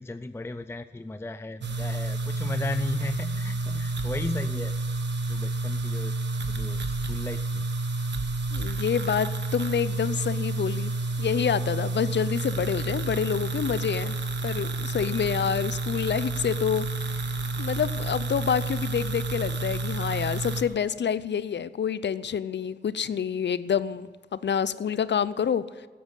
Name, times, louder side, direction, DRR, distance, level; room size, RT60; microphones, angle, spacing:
voice 1, 0.0-4.7 5.3-6.1 6.5-7.6, left 2 dB, 15° left, 11 dB, 0.4 m, -35 dB
sound 1, 1.6-20.6, right 2 dB, 80° right, 1.2 m, -30 dB
voice 2, 8.5-10.9 11.2-14.2 14.4-16.9 17.1-17.3 17.6-25.6, left 8 dB, 80° left, 16 dB, 0.5 m, -27 dB
14.5 x 8.7 x 8.2 m, 1.5 s
wide cardioid pair, 95°, 18 cm